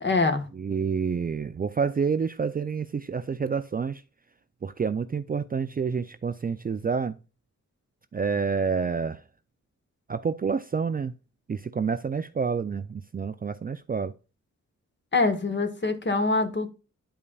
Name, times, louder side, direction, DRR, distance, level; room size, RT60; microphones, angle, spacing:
voice 1, 0.0-0.5 15.1-16.7, left 3 dB, 35° left, 1.3 m, -24 dB
voice 2, 0.5-4.0 4.6-7.2 8.1-9.2 10.1-11.1 11.5-14.1, right 5 dB, 30° right, 0.4 m, -28 dB
11.0 x 5.3 x 2.3 m
wide cardioid pair, 110°, 30 cm